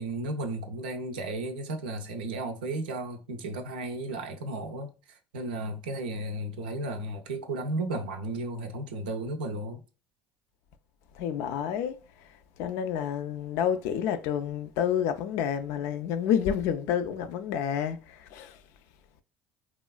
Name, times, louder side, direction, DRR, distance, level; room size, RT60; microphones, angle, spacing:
voice 1, 0.0-4.9 5.3-9.8, right 2 dB, 85° right, 0.4 m, -34 dB
voice 2, 11.1-18.6, left 9 dB, 70° left, 0.3 m, -29 dB
3.0 x 2.4 x 2.2 m
hypercardioid pair, 70°, 5 cm